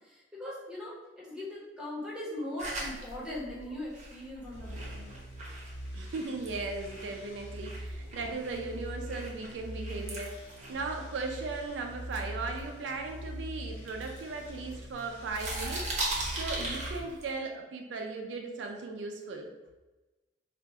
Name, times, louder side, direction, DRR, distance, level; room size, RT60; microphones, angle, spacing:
voice 1, 0.0-5.1, left 1 dB, 5° right, -7 dB, 0.9 m, -40 dB
sound 1, 2.6-7.2 7.6-11.7 12.1-13.3 13.8-15.0 15.3-17.3, right 2 dB, 40° right, 0.7 m, -39 dB
sound 2, 4.5-17.0, equal, 75° left, 1.0 m, -43 dB
voice 2, 5.9-19.5, right 3 dB, 85° right, 3 dB, 0.4 m, -37 dB
2.4 x 2.3 x 3.9 m, 1.1 s
head